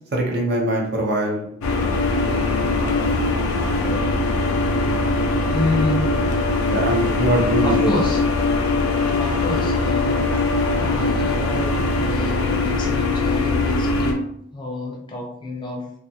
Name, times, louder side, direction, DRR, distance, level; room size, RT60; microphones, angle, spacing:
voice 1, 0.1-1.5 6.7-8.0, right 1 dB, 50° right, -1 dB, 0.6 m, -22 dB
sound 1, 1.6-14.1, left 3 dB, 90° left, 0.4 m, -21 dB
voice 2, 5.5-6.0 7.6-8.2 9.2-14.3 14.5-15.8, left 2 dB, 20° left, 0 dB, 0.4 m, -28 dB
2.3 x 2.3 x 2.7 m, 0.71 s
head